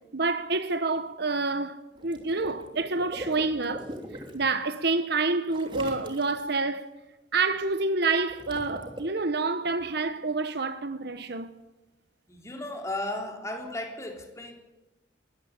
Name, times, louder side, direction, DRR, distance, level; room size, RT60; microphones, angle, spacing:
voice 1, 0.1-6.9 7.3-11.5, right 3 dB, 60° right, 1.3 m, -28 dB
Water / Liquid, 1.9-4.4 5.5-6.5 8.0-9.0, equal, 25° right, 3.2 m, -42 dB
voice 2, 12.3-14.5, left 1 dB, 15° left, 3.8 m, -35 dB
21.5 x 14.0 x 8.7 m
head